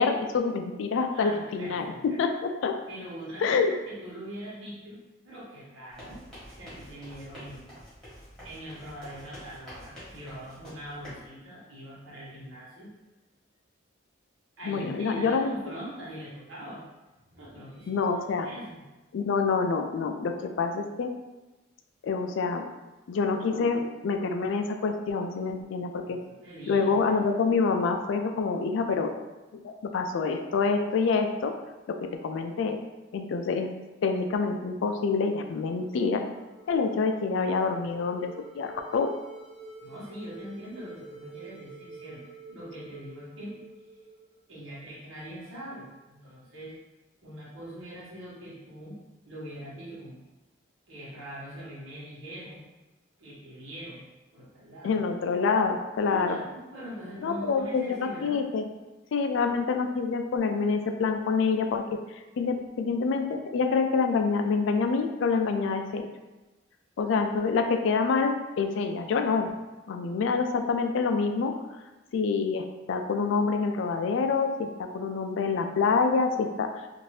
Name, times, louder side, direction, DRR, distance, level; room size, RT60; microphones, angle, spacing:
voice 1, 0.0-2.7 3.4-3.7 14.7-15.6 17.9-18.5 19.1-21.1 22.0-22.7 23.1-26.2 26.7-29.1 29.5-31.6 31.9-32.8 33.1-33.7 34.0-36.2 36.7-39.2 54.8-56.4 57.2-58.6 59.1-62.0 62.4-66.1 67.0-69.5 69.9-71.6 72.1-76.7, left 4 dB, 70° left, 5 dB, 0.3 m, -27 dB
voice 2, 1.1-2.2 2.9-7.7 8.4-12.9 14.6-16.8 17.2-18.0 18.4-18.8 26.0-27.2 39.8-42.2 42.5-43.6 44.5-46.8 47.2-49.0 49.2-50.2 50.9-52.6 53.2-54.0 54.3-55.0 56.0-58.4, equal, 80° right, -8 dB, 1.3 m, -42 dB
sound 1, 5.9-11.3, equal, ahead, 1.2 m, -47 dB
sound 2, 35.6-44.7, right 3 dB, 55° right, 0.9 m, -48 dB
2.7 x 2.5 x 3.2 m, 1.1 s
head